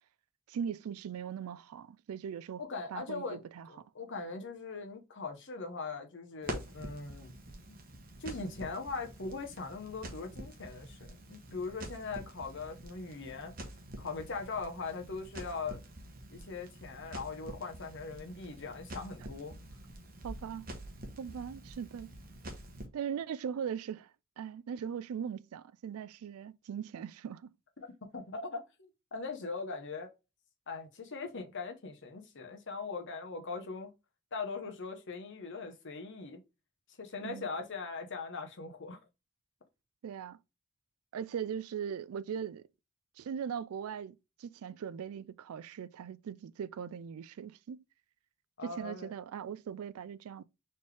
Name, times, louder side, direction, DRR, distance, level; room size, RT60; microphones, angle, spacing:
voice 1, 0.5-2.6 2.9-3.7 20.2-20.7 21.2-22.1 22.9-24.1 24.4-27.5 37.2-37.5 40.0-40.4 41.1-42.6 43.2-47.8 48.6-50.4, right 7 dB, 70° right, 0.3 m, -40 dB
voice 2, 2.6-7.4 7.7-7.8 8.2-11.0 11.3-13.5 14.0-15.8 16.3-19.6 27.8-30.1 30.7-33.9 34.3-36.4 37.0-39.0 48.6-49.1, left 4 dB, 55° left, 1.0 m, -40 dB
Crackle, 6.4-22.9, right 1 dB, 40° right, 0.9 m, -47 dB
4.3 x 3.3 x 3.3 m
head